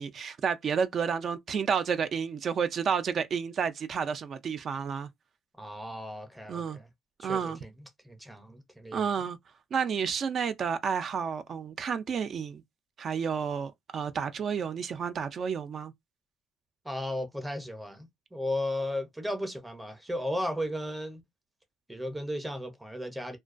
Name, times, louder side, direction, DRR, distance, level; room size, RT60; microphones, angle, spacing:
voice 1, 0.0-5.1 6.5-6.8 7.2-7.6 8.9-9.4 9.7-12.6 13.0-15.9, right 6 dB, 40° right, 0.3 m, -30 dB
voice 2, 5.6-6.9 7.2-9.1 16.8-21.2 21.9-23.4, left 1 dB, 5° right, 0.6 m, -35 dB
2.3 x 2.2 x 2.4 m
cardioid pair, 125°, 0 cm